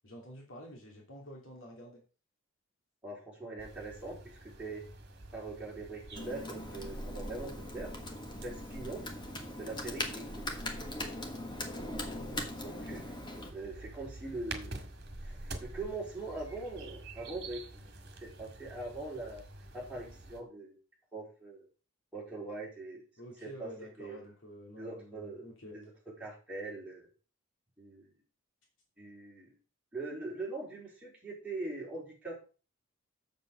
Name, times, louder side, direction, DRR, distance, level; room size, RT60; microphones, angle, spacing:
voice 1, 0.0-2.0 12.1-12.5 23.2-25.8, equal, 65° left, -1 dB, 2.8 m, -49 dB
voice 2, 3.0-4.8 5.3-7.9 8.4-9.1 9.6-10.6 12.6-13.1 13.5-14.7 15.2-17.9 18.2-19.4 19.7-20.8 21.1-21.6 22.1-23.0 23.4-24.2 24.8-25.4 25.7-27.1 27.8-28.1 29.0-29.5 29.9-32.5, right 2 dB, 5° right, -5 dB, 4.2 m, -42 dB
sound 1, 3.6-20.4, right 2 dB, 50° right, 2.0 m, -49 dB
Computer keyboard, 6.2-13.5, left 1 dB, 20° left, 1.4 m, -41 dB
sound 2, 6.5-15.9, right 1 dB, 65° right, 1.2 m, -49 dB
7.2 x 7.1 x 6.3 m, 0.36 s
head